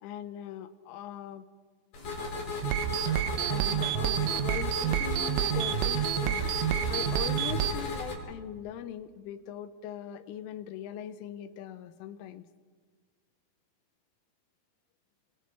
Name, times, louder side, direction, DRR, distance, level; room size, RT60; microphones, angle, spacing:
voice 1, 0.0-1.5 3.5-12.5, left 10 dB, 80° left, 11 dB, 3.2 m, -41 dB
sound 1, 1.9-8.1, left 3 dB, 50° left, 6.7 m, -35 dB
sound 2, 2.6-7.7, right 12 dB, 80° right, 2.8 m, -29 dB
28.5 x 28.5 x 3.4 m, 1.5 s
omnidirectional pair, 5.9 m